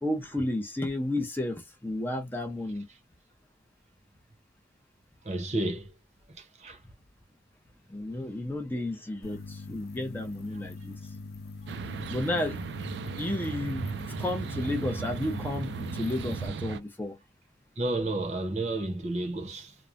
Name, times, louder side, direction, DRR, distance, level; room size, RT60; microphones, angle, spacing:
voice 1, 0.0-2.9 7.9-11.0 12.1-12.6 13.2-17.2, left 1 dB, 10° left, 0.5 m, -32 dB
voice 2, 5.2-5.9 6.4-6.8 8.1-8.2 17.8-19.8, right 2 dB, 40° right, 0.7 m, -31 dB
sound 1, 9.2-16.5, left 3 dB, 60° left, 0.6 m, -42 dB
sound 2, 11.7-16.8, right 5 dB, 80° right, 0.4 m, -36 dB
3.0 x 2.1 x 2.4 m
head